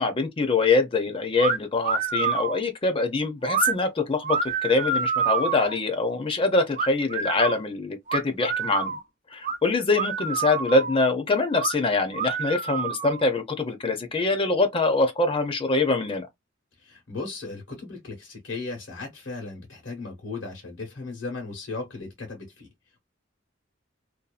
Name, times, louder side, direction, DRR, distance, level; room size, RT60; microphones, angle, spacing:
voice 1, 0.0-9.0 9.3-16.3, left 3 dB, 30° left, 0.5 m, -24 dB
sound 1, 1.4-1.6 1.8-2.6 3.5-3.7 4.2-5.8 6.8-7.6 8.1-9.0 9.4-9.6 9.9-11.0 11.5-11.8 12.1-13.2, right 5 dB, 45° right, 0.5 m, -27 dB
voice 2, 16.8-22.7, left 3 dB, 85° left, 1.1 m, -36 dB
2.7 x 2.2 x 2.4 m
head